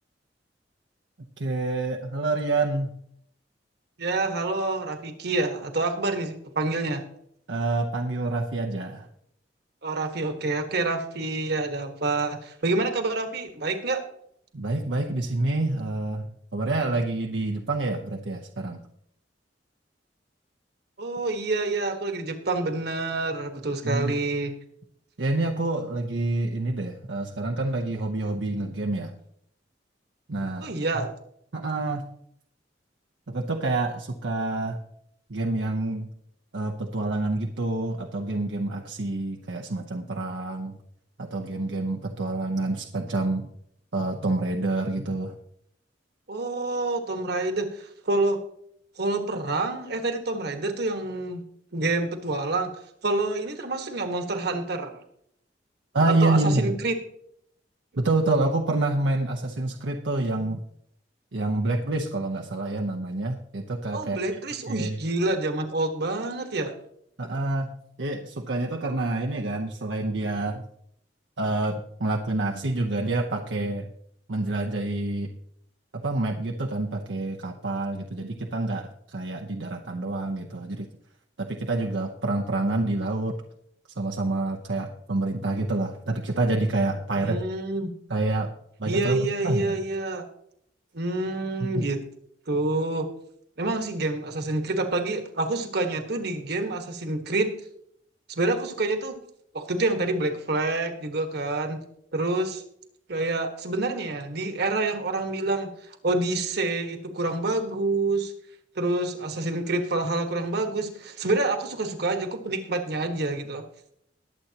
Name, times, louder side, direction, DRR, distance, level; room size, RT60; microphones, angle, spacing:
voice 1, 1.4-2.9 7.5-9.1 14.5-18.8 23.8-24.1 25.2-29.1 30.3-30.7 31.5-32.1 33.3-34.8 35.3-36.1 36.5-40.8 41.2-43.5 43.9-45.4 55.9-56.7 58.0-60.6 61.3-64.4 64.7-65.0 67.2-67.7 68.0-70.6 71.4-73.9 74.3-75.3 75.9-80.9 81.4-83.4 84.0-87.4 88.1-88.5 88.8-89.2 89.4-89.8 91.7-91.9, right 2 dB, 80° right, 2 dB, 0.9 m, -27 dB
voice 2, 4.0-7.0 9.8-14.0 21.0-24.5 30.6-31.1 46.3-48.4 49.0-51.4 51.7-52.7 53.0-55.0 56.2-56.9 63.9-66.7 87.2-87.9 88.8-90.2 90.9-92.0 92.5-93.1 93.6-97.5 98.3-99.1 99.5-101.8 102.1-102.6 103.1-105.7 106.0-108.3 108.7-113.6, right 2 dB, 65° right, 6 dB, 1.6 m, -27 dB
21.0 x 8.0 x 2.9 m, 0.70 s
head